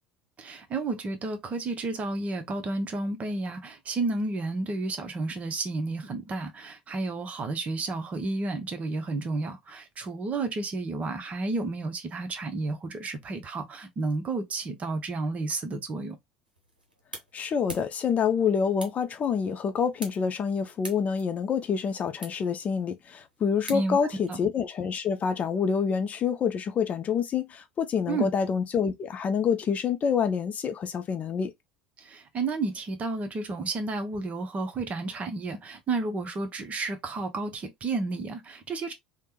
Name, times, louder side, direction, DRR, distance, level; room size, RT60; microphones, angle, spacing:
voice 1, 0.4-16.2 23.7-24.0 24.3-24.4 28.1-28.3 32.0-38.9, right 3 dB, 30° right, 0.8 m, -31 dB
sound 1, 16.5-24.3, right 1 dB, 85° right, 0.7 m, -47 dB
voice 2, 17.3-31.5, left 6 dB, 30° left, 0.4 m, -27 dB
3.3 x 2.1 x 2.9 m
figure-of-eight pair, 70°, 5 cm